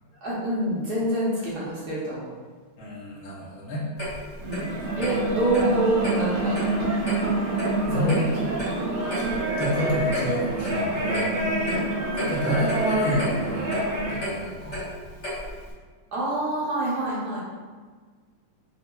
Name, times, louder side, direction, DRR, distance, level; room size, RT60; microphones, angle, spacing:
voice 1, 0.2-2.3 4.4-6.6 7.9-8.3 8.7-8.8 11.6-11.9 16.1-17.4, right 1 dB, 55° right, -8 dB, 1.5 m, -27 dB
voice 2, 2.8-3.8 5.0-5.1 7.9-8.2 9.2-11.4 12.1-13.7 14.1-14.9, equal, 70° left, -6 dB, 1.7 m, -28 dB
Clock, 4.0-15.7, left 1 dB, 35° left, 1.6 m, -35 dB
sound 1, 4.4-14.2, right 2 dB, 85° right, 1.7 m, -27 dB
4.3 x 2.7 x 2.2 m, 1.5 s
omnidirectional pair, 2.3 m